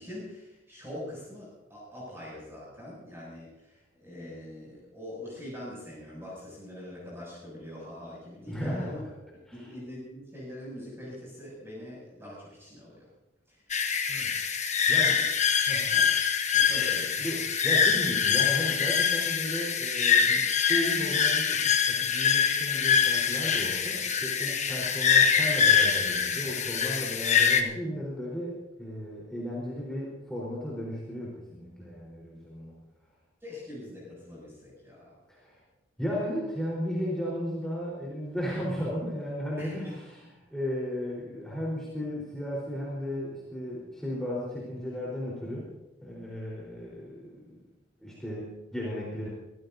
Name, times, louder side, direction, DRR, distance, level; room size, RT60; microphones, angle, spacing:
voice 1, 0.0-9.0 9.5-13.1 13.5-13.8 14.9-15.3 15.9-16.1 16.5-17.4 33.4-35.2 39.6-39.9, left 1 dB, 15° right, -5 dB, 7.4 m, -43 dB
voice 2, 8.5-8.9 9.5-9.7 14.1-14.4 14.9-15.1 15.6-15.9 17.2-32.7 35.3-35.6 36.0-40.2 40.5-45.7 46.0-47.7 48.0-49.3, equal, 5° left, -6 dB, 4.3 m, -35 dB
sound 1, 13.7-27.6, left 7 dB, 40° left, 1.2 m, -24 dB
25.5 x 15.5 x 2.8 m, 0.98 s
head